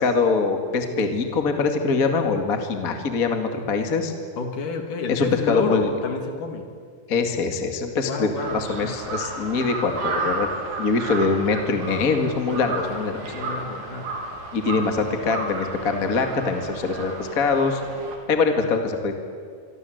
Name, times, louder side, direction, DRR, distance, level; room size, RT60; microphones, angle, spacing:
voice 1, 0.0-4.1 5.1-5.9 7.1-10.5 10.8-13.2 14.5-17.8 18.3-19.1, left 4 dB, 30° left, 5 dB, 1.6 m, -23 dB
voice 2, 4.4-6.7 8.1-8.9 12.7-14.1, left 3 dB, 55° left, 5 dB, 3.6 m, -30 dB
Crow, 8.4-18.1, right 3 dB, 60° right, 5.0 m, -33 dB
26.5 x 24.0 x 8.0 m, 2.2 s
omnidirectional pair, 4.7 m